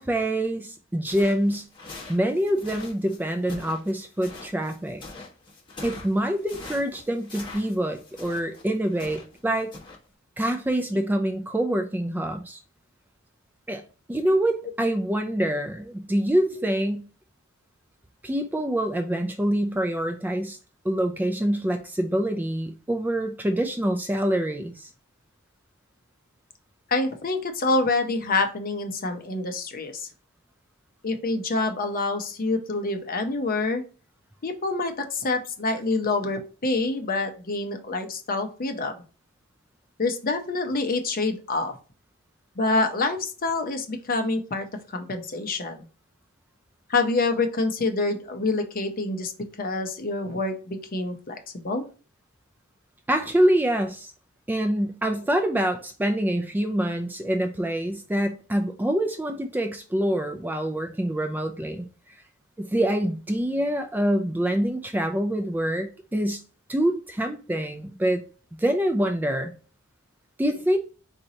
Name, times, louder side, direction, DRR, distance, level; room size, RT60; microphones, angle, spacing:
voice 1, 0.0-1.7 2.1-5.0 5.8-9.7 10.4-12.6 13.7-13.8 14.1-17.0 18.2-20.6 20.8-24.9 53.1-54.1 54.5-61.9 62.6-66.4 66.7-68.2 68.6-69.5 70.4-70.8, right 1 dB, 10° right, 0.3 m, -25 dB
sound 1, 1.0-9.4 9.7-10.0, left 3 dB, 25° left, 1.2 m, -43 dB
voice 2, 26.9-30.1 31.0-33.8 34.4-39.0 40.0-41.8 42.6-45.8 46.9-49.3 49.6-51.8, left 3 dB, 45° left, 0.7 m, -27 dB
4.4 x 4.0 x 2.7 m
head